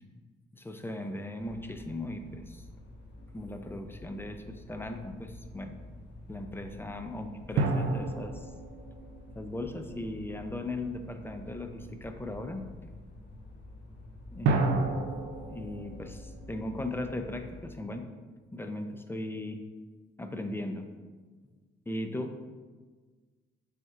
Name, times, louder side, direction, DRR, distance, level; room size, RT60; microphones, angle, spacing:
voice 1, 0.5-2.6 3.3-5.7 6.3-8.5 9.4-12.6 14.3-15.2 15.4-18.1 18.5-19.6 20.2-20.9 21.9-22.5, left 1 dB, 10° left, 6 dB, 0.6 m, -38 dB
sound 1, 1.3-17.7, left 2 dB, 60° left, 1.1 m, -49 dB
sound 2, 3.2-3.9 7.6-10.4 14.4-17.7, right 3 dB, 85° right, 0.7 m, -32 dB
6.8 x 4.3 x 3.7 m, 1.4 s
cardioid pair, 90°, 20 cm